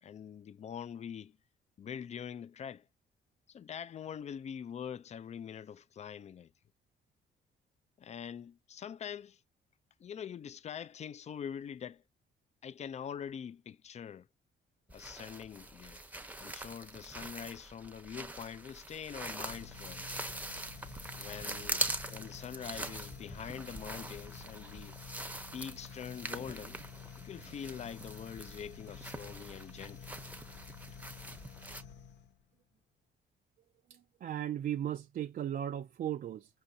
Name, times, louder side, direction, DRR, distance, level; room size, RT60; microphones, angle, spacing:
voice 1, 0.0-1.4 1.8-2.8 3.5-6.5 8.0-9.4 10.0-12.0 12.6-14.3 14.9-16.0 16.4-20.1 21.2-21.8 22.1-25.0 25.5-26.8 27.2-30.2, left 8 dB, 35° left, 0.3 m, -44 dB
sound 1, 14.9-31.8, right 2 dB, 10° right, 0.7 m, -43 dB
sound 2, 19.4-32.4, left 7 dB, 65° left, 0.8 m, -51 dB
voice 2, 33.9-36.5, right 10 dB, 45° right, 0.4 m, -36 dB
5.3 x 2.5 x 2.7 m
cardioid pair, 90°, 20 cm